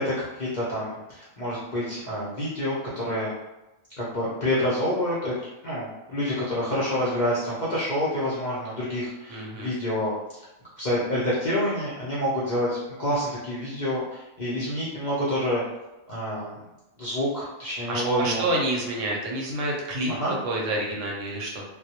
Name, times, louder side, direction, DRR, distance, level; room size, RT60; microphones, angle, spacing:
voice 1, 0.0-3.3 4.0-5.3 5.6-10.1 10.8-15.6 16.1-16.6 17.0-18.4 20.1-20.3, equal, 55° left, -8 dB, 0.5 m, -27 dB
voice 2, 9.3-9.7 17.9-21.6, right 1 dB, 70° right, -1 dB, 0.9 m, -28 dB
2.2 x 2.0 x 2.8 m, 1.0 s
omnidirectional pair, 1.4 m